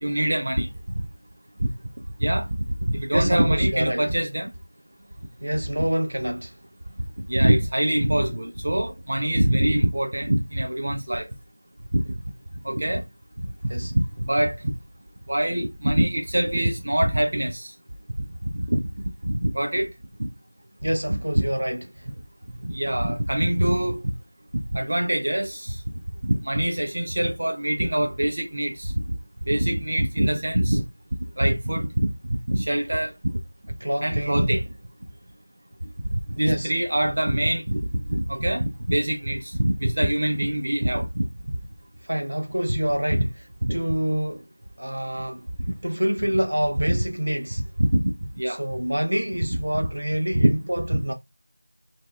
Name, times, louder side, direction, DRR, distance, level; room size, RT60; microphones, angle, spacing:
voice 1, 0.0-1.1 1.6-1.7 2.2-4.5 7.3-11.3 11.9-12.0 12.6-13.0 13.9-14.6 15.3-17.7 18.4-18.8 19.2-19.9 20.2-20.3 21.1-21.5 22.6-24.0 24.7-25.8 26.2-29.2 29.5-30.8 31.4-33.1 34.0-34.7 36.0-41.3 43.1-43.3 43.6-43.7 46.9-47.0 47.8-48.6 49.5-49.6 50.3-50.5 50.9-51.0, right 1 dB, 30° right, 0.4 m, -24 dB
voice 2, 3.1-4.0 5.4-6.5 13.7-13.9 20.8-21.8 33.8-34.6 36.4-36.7 42.1-43.3 43.7-44.5 44.8-45.4 45.8-47.6 48.5-51.1, right 1 dB, 75° right, 0.7 m, -26 dB
2.7 x 2.6 x 2.3 m
figure-of-eight pair, 180°, 0 cm